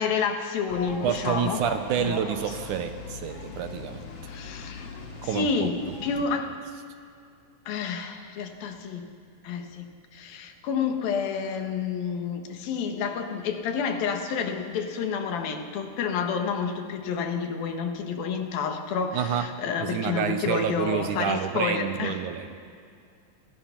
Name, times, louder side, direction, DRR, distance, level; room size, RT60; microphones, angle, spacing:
voice 1, 0.0-1.6 2.0-2.1 4.2-4.9 5.2-6.5 7.7-9.0 9.4-9.8 10.1-22.2, left 6 dB, 85° left, 5 dB, 3.4 m, -29 dB
sound 1, 0.7-6.2, left 3 dB, 45° left, 3.0 m, -39 dB
voice 2, 1.0-4.0 5.2-5.7 19.1-19.5 19.8-22.6, right 8 dB, 70° right, 8 dB, 2.2 m, -28 dB
29.0 x 19.0 x 5.9 m, 2.3 s
omnidirectional pair, 4.1 m